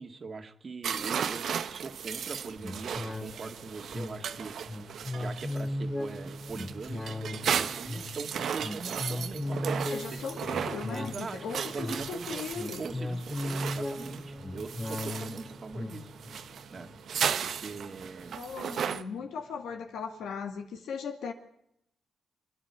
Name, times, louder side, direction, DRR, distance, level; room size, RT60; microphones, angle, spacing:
voice 1, 0.0-4.5 5.1-10.5 10.9-12.5 12.8-16.1 16.7-16.9 17.4-18.4, right 4 dB, 45° right, 2.1 m, -41 dB
sound 1, 0.8-19.0, right 8 dB, 75° right, 0.9 m, -36 dB
sound 2, 2.6-18.3 18.7-18.8, left 1 dB, 15° left, 2.3 m, -38 dB
voice 2, 9.9-12.8 18.3-21.3, left 6 dB, 85° left, 2.1 m, -38 dB
27.0 x 10.0 x 9.6 m
cardioid pair, 75°, 0 cm